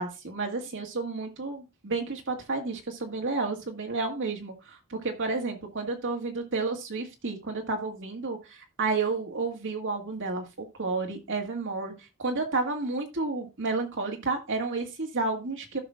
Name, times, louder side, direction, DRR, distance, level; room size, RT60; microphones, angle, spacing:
voice 1, 0.0-11.9 12.2-15.8, right 3 dB, 60° right, 3 dB, 1.9 m, -31 dB
15.5 x 6.0 x 2.3 m, 0.26 s
head